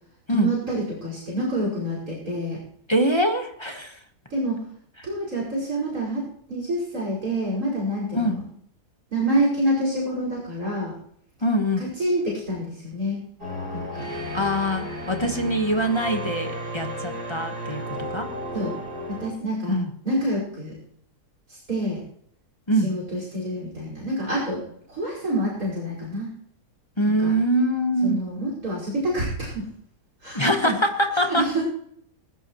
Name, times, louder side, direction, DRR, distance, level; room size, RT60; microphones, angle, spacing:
voice 1, 0.3-2.6 4.3-4.7 5.0-8.4 9.1-11.0 11.8-13.2 13.7-14.1 18.5-18.7 19.1-19.8 20.0-20.8 21.7-22.0 22.8-24.6 24.9-26.3 27.0-27.3 28.0-29.7 30.2-30.8 31.3-31.6, right 1 dB, 60° right, -4 dB, 5.9 m, -27 dB
voice 2, 2.9-4.0 8.1-8.4 11.4-11.9 14.3-18.3 19.7-19.9 22.7-22.9 27.0-28.3 30.3-31.5, equal, 20° left, 5 dB, 1.2 m, -23 dB
sound 1, 13.4-19.3, equal, 75° right, 6.7 m, -33 dB
20.0 x 16.0 x 3.1 m, 0.64 s
omnidirectional pair, 1.7 m